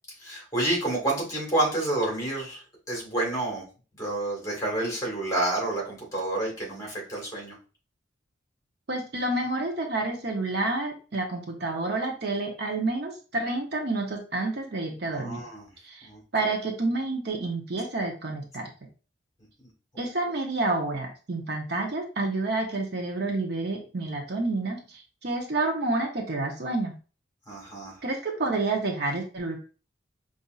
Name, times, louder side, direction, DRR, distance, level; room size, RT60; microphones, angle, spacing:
voice 1, 0.2-3.6 4.0-7.6 15.1-15.7 16.0-16.2 27.5-28.0, right 1 dB, 15° left, -2 dB, 1.7 m, -29 dB
voice 2, 8.9-15.4 15.8-18.7 20.0-26.9 28.0-29.6, right 2 dB, 55° right, 2 dB, 0.8 m, -29 dB
5.3 x 2.6 x 2.4 m, 0.36 s
head